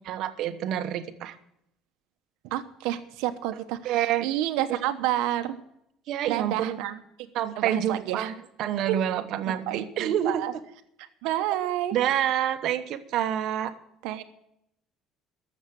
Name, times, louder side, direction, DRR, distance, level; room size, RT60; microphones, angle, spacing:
voice 1, 0.1-1.4 3.8-4.3 6.1-6.8 7.3-10.5 11.9-13.7, right 10 dB, 55° right, 8 dB, 1.1 m, -27 dB
voice 2, 2.4-5.6 6.3-7.3 7.6-8.3 8.9-9.0 9.5-10.5 11.2-12.0 14.0-14.2, right 13 dB, 85° right, 7 dB, 1.0 m, -30 dB
12.5 x 7.2 x 9.1 m, 0.76 s
cardioid pair, 155°, 0 cm